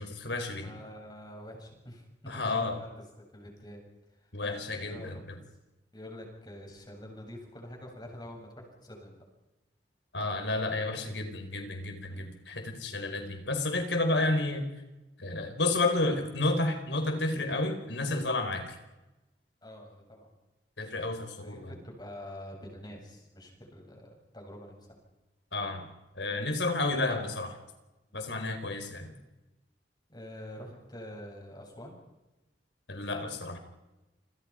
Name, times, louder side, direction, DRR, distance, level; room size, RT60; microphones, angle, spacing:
voice 1, 0.0-0.7 2.3-2.7 4.3-5.4 10.1-14.7 15.2-18.8 20.8-21.7 25.5-25.9 26.1-27.5 28.1-29.2 32.9-33.6, left 2 dB, 85° left, 6 dB, 4.5 m, -31 dB
voice 2, 0.6-3.8 4.1-4.3 4.6-5.6 5.9-9.2 12.1-12.3 19.6-20.3 21.4-25.0 28.1-28.3 30.1-32.0, left 1 dB, 25° left, 0 dB, 7.8 m, -46 dB
29.0 x 26.5 x 5.1 m, 1.0 s
head